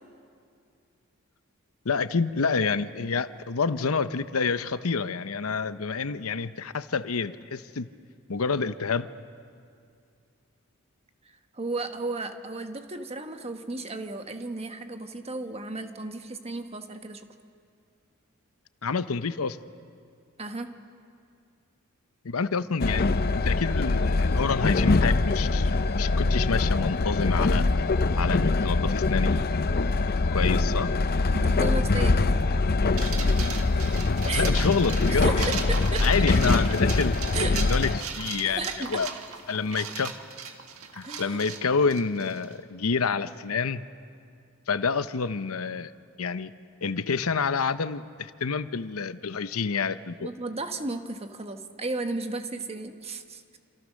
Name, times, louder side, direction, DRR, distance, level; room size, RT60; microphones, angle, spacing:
voice 1, 1.8-7.9 8.3-9.1 18.8-19.6 22.2-23.0 23.4-27.7 28.2-29.3 30.3-30.9 34.4-35.5 36.0-37.1 37.5-39.1 39.5-40.1 40.9-43.8 44.7-45.9 46.2-46.5 46.8-50.3, left 5 dB, 80° left, 13 dB, 0.8 m, -28 dB
voice 2, 11.5-17.3 20.4-20.8 31.3-32.4 34.2-34.5 35.1-36.8 37.3-37.6 38.4-39.0 39.8-39.9 41.0-41.4 50.2-53.4, right 2 dB, 30° right, 7 dB, 1.4 m, -34 dB
Train, 22.8-38.0, left 3 dB, 45° left, 0.6 m, -23 dB
sound 1, 33.0-42.5, right 6 dB, 75° right, 1.8 m, -37 dB
28.0 x 26.5 x 6.4 m, 2.3 s
head